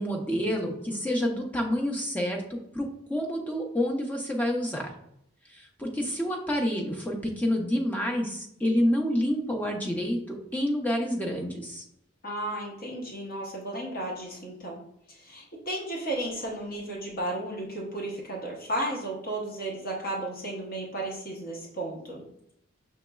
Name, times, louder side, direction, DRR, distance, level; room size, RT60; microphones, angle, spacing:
voice 1, 0.0-2.4 2.7-4.9 5.5-11.8, equal, 10° left, 0 dB, 0.5 m, -28 dB
voice 2, 12.2-14.8 15.1-22.2, right 1 dB, 45° left, -2 dB, 0.9 m, -34 dB
5.8 x 3.0 x 2.3 m, 0.76 s
head